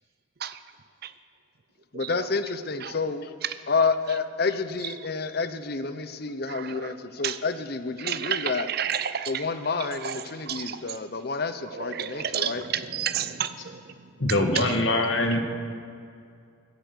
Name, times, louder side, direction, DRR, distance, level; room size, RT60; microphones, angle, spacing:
voice 1, 1.9-3.3 3.7-8.7 9.3-12.6, left 4 dB, 50° left, 11 dB, 0.7 m, -29 dB
voice 2, 6.5-7.0 7.2-7.4 8.0-9.5 9.8-10.8 11.6-15.4, right 9 dB, 50° right, 12 dB, 0.6 m, -32 dB
voice 3, 14.2-15.4, left 2 dB, 75° left, 5 dB, 1.4 m, -23 dB
15.0 x 8.4 x 8.1 m, 2.3 s
head